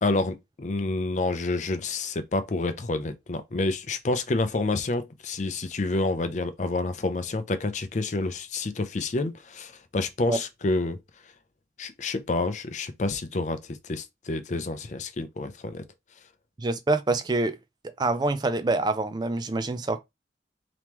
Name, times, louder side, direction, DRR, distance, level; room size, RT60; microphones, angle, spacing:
voice 1, 0.0-11.0 11.8-15.8, left 2 dB, 40° left, 0.5 m, -28 dB
voice 2, 16.6-17.6 18.0-20.0, right 2 dB, 25° right, 0.4 m, -26 dB
3.5 x 2.9 x 3.0 m
head